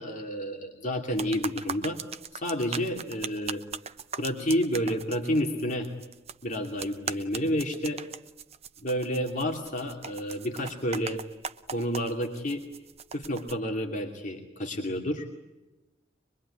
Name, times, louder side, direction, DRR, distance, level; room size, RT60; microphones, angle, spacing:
voice 1, 0.0-2.0 2.3-3.6 4.2-5.9 6.4-8.0 8.8-11.2 11.7-12.6 13.1-15.3, equal, 40° left, 1 dB, 2.7 m, -30 dB
sound 1, 1.1-13.6, right 6 dB, 35° right, 0.9 m, -40 dB
24.5 x 23.0 x 9.9 m, 1.0 s
head